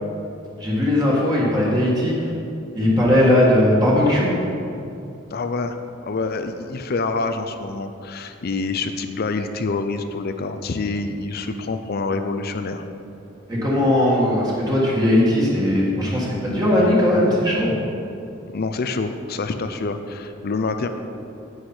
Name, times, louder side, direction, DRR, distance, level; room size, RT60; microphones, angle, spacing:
voice 1, 0.6-2.3 2.7-4.4 13.5-17.7, left 1 dB, 20° right, -6 dB, 1.7 m, -18 dB
voice 2, 5.3-5.8 6.0-12.8 18.5-20.9, left 3 dB, 50° left, 8 dB, 0.5 m, -26 dB
9.5 x 8.1 x 4.4 m, 2.6 s
head